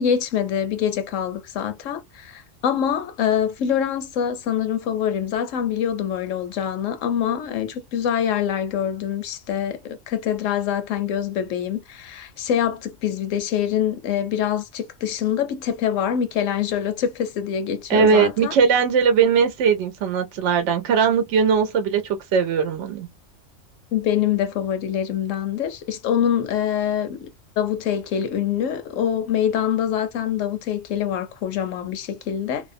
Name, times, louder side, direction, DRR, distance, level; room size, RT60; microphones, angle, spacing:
voice 1, 0.0-18.5 23.9-27.3 27.6-32.7, left 9 dB, 80° left, 1.0 m, -25 dB
voice 2, 17.9-22.0 22.3-23.1, right 6 dB, 70° right, 0.9 m, -19 dB
2.7 x 2.1 x 2.5 m
omnidirectional pair, 1.3 m